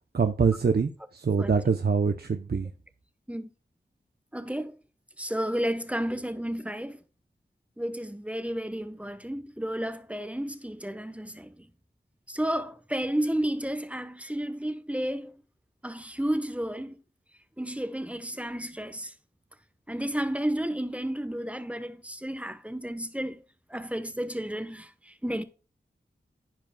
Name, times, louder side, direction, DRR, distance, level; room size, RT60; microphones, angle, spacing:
voice 1, 0.1-2.7, right 5 dB, 60° right, 0.8 m, -25 dB
voice 2, 4.3-4.8 5.2-7.0 7.8-11.7 12.3-15.3 15.8-17.0 17.6-19.1 19.9-23.4 23.7-25.4, right 1 dB, 5° right, 1.1 m, -32 dB
14.5 x 5.1 x 2.3 m
cardioid pair, 50°, 18 cm